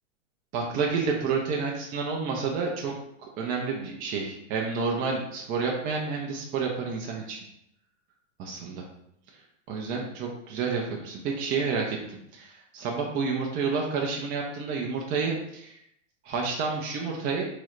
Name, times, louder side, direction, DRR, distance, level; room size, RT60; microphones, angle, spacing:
voice 1, 0.5-2.9 3.4-7.4 8.4-8.8 9.7-15.8 16.2-17.5, right 5 dB, 25° right, 0 dB, 0.4 m, -29 dB
3.7 x 2.0 x 3.0 m, 0.78 s
hypercardioid pair, 120°, 37 cm